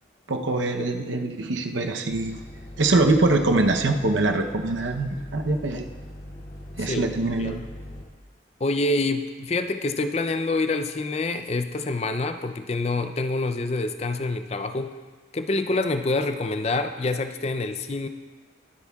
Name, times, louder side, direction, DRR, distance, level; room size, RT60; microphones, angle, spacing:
voice 1, 0.3-2.4 2.8-5.9 6.8-7.6, right 2 dB, 80° right, 4 dB, 0.8 m, -23 dB
sound 1, 2.1-8.0, left 1 dB, 55° left, 2.3 m, -41 dB
voice 2, 8.6-14.9 15.3-18.1, left 2 dB, 35° left, 9 dB, 0.4 m, -26 dB
22.0 x 8.2 x 2.3 m, 1.4 s
head